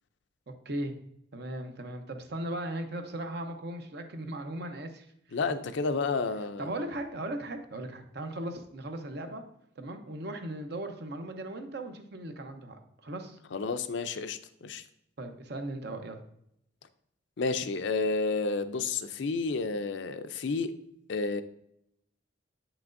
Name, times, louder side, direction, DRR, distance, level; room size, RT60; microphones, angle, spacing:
voice 1, 1.3-5.0 5.5-5.6 6.6-9.4 9.8-13.4 15.2-16.2, right 1 dB, 55° right, 6 dB, 0.7 m, -37 dB
voice 2, 5.3-6.7 13.5-14.8 17.4-20.7 21.1-21.4, left 4 dB, 65° left, 10 dB, 0.5 m, -31 dB
7.5 x 6.0 x 2.5 m, 0.75 s
head